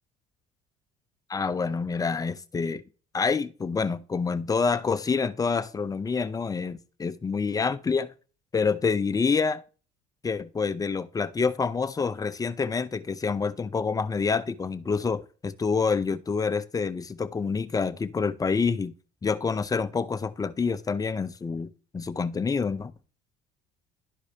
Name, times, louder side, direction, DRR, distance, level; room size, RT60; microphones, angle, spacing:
voice 1, 1.3-2.8 3.1-8.1 8.5-9.6 10.2-18.9 19.2-22.9, left 5 dB, 20° left, 0.6 m, -27 dB
12.0 x 4.8 x 2.8 m
supercardioid pair, 90°, 16 cm